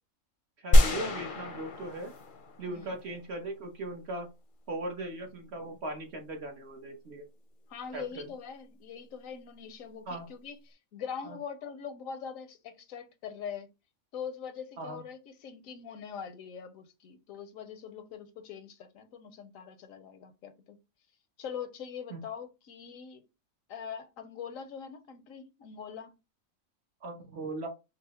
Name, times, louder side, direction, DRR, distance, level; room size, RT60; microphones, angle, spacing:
voice 1, 0.6-2.1 2.6-4.3 4.7-7.3 7.9-8.3 10.1-10.3 11.2-11.4 14.8-15.0 22.1-22.2 27.0-27.7, right 2 dB, 55° right, 1.1 m, -38 dB
sound 1, 0.7-3.1, equal, 50° left, 0.7 m, -25 dB
voice 2, 7.7-13.7 14.1-20.8 21.4-23.2 23.7-26.1, left 7 dB, 80° left, 1.0 m, -42 dB
5.4 x 2.0 x 2.9 m
omnidirectional pair, 1.4 m